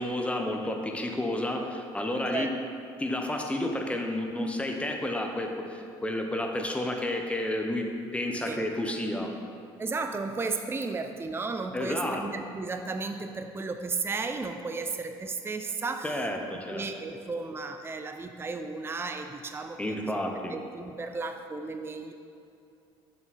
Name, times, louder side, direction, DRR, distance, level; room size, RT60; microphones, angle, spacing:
voice 1, 0.0-2.5 3.0-7.9 8.1-9.3 11.7-12.2 16.0-16.8 19.8-20.6, left 1 dB, 10° left, 3 dB, 1.0 m, -31 dB
voice 2, 9.8-16.1 16.7-22.1, right 4 dB, 20° right, 6 dB, 0.5 m, -34 dB
7.3 x 6.0 x 4.2 m, 2.5 s
supercardioid pair, 70°, 12 cm